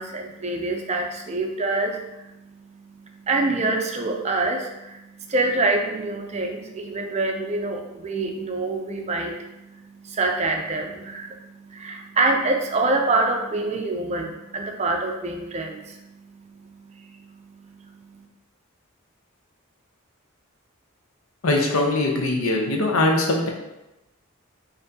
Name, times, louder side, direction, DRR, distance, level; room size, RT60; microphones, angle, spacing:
voice 1, 0.0-18.2, right 2 dB, 30° right, 3 dB, 0.4 m, -26 dB
voice 2, 21.4-23.5, left 2 dB, 80° left, 0 dB, 0.8 m, -21 dB
5.6 x 2.7 x 2.7 m, 0.97 s
head